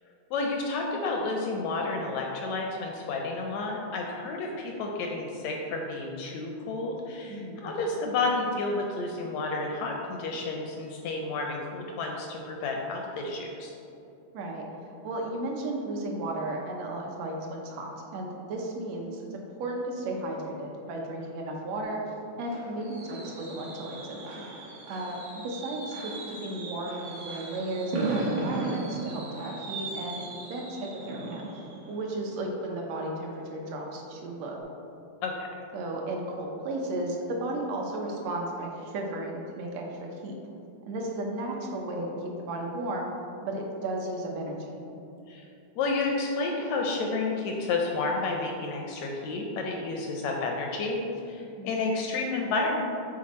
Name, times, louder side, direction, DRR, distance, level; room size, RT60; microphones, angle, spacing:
voice 1, 0.3-13.7 35.2-35.5 45.3-45.4 45.8-51.0 51.3-52.8, left 3 dB, 80° left, 1 dB, 1.6 m, -31 dB
voice 2, 7.3-7.7 14.3-22.0 22.4-24.4 24.9-31.4 31.9-34.6 35.7-40.3 40.9-43.1 43.4-44.8 51.6-51.9, right 1 dB, 70° right, 0 dB, 1.7 m, -34 dB
Fireworks, 21.8-33.5 33.9-34.2 34.4-34.5, right 2 dB, 85° right, 2.7 m, -37 dB
7.7 x 4.0 x 4.2 m, 2.7 s
omnidirectional pair, 3.6 m